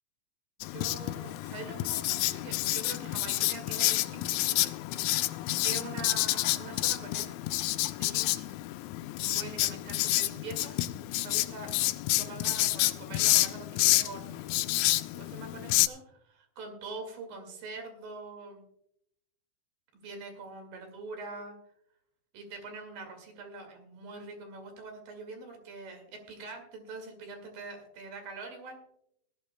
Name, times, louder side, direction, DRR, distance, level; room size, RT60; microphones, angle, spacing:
Writing, 0.6-15.9, left 17 dB, 85° left, 2.8 m, -29 dB
voice 1, 0.7-4.7 5.3-7.4 8.0-8.5 9.2-10.8 11.2-11.7 12.2-14.6 15.1-18.6 19.9-21.6 22.3-28.8, right 3 dB, 55° right, 5 dB, 3.5 m, -44 dB
18.5 x 13.5 x 2.2 m, 0.76 s
omnidirectional pair, 5.2 m